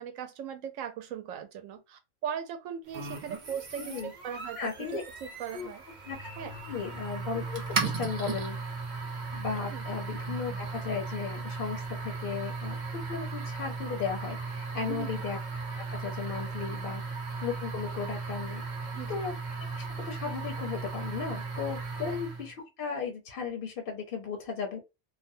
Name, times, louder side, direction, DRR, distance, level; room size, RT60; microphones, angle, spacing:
voice 1, 0.0-5.8 6.4-6.5 9.7-9.8 14.9-15.1 18.9-19.2, right 8 dB, 80° right, 1.0 m, -39 dB
sound 1, 2.9-22.5, right 4 dB, 45° right, 0.7 m, -36 dB
voice 2, 3.8-4.1 4.6-5.0 5.5-5.7 6.1-6.3 6.7-8.6 9.3-12.8 13.1-15.4 15.8-17.0 17.4-18.6 19.1-19.3 19.7-24.8, left 6 dB, 60° left, 0.6 m, -36 dB
2.4 x 2.1 x 2.5 m
omnidirectional pair, 1.4 m